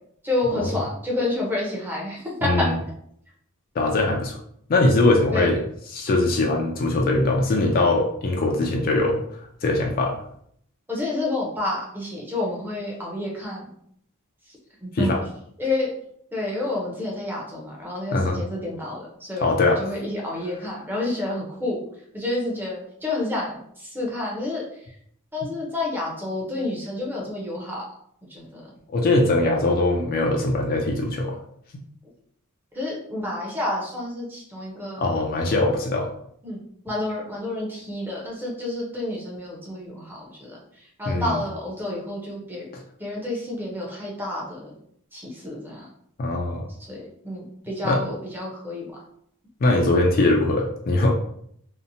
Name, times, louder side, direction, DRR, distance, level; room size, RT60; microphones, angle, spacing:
voice 1, 0.2-2.7 5.3-5.5 10.9-13.7 14.8-15.1 15.6-15.9 16.3-21.8 22.1-24.6 25.3-27.9 28.3-28.6 32.7-35.1 36.4-40.6 41.0-42.7 43.0-44.8 45.1-45.9 46.9-48.9, left 2 dB, 10° right, -3 dB, 0.6 m, -29 dB
voice 2, 2.4-2.8 3.8-4.4 4.7-5.6 5.9-9.2 9.6-10.2 14.9-15.2 18.1-18.4 19.4-19.9 28.9-31.4 35.0-36.1 41.1-41.4 46.2-46.7 47.8-48.0 49.6-51.1, left 2 dB, 40° left, 1 dB, 0.4 m, -21 dB
2.7 x 2.1 x 2.6 m, 0.68 s
head